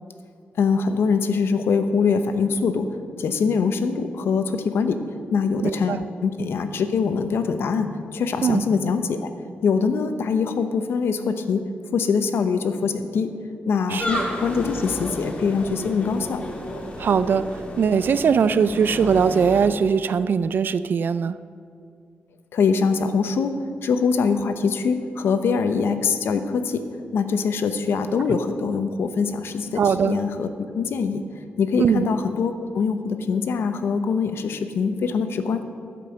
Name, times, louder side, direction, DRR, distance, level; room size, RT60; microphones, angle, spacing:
voice 1, 0.6-2.9 3.2-5.0 5.3-9.3 9.6-11.6 11.9-13.3 13.7-16.4 22.5-23.5 23.8-26.8 27.1-30.5 30.7-31.3 31.6-35.6, left 5 dB, 75° left, 9 dB, 0.7 m, -23 dB
voice 2, 5.6-6.0 8.4-8.6 13.9-14.0 17.0-21.4 29.8-30.2 31.8-32.1, right 6 dB, 55° right, 14 dB, 0.4 m, -21 dB
sound 1, 14.0-19.7, left 1 dB, 30° left, 1.6 m, -32 dB
12.5 x 5.4 x 7.4 m, 2.3 s
wide cardioid pair, 125°, 4 cm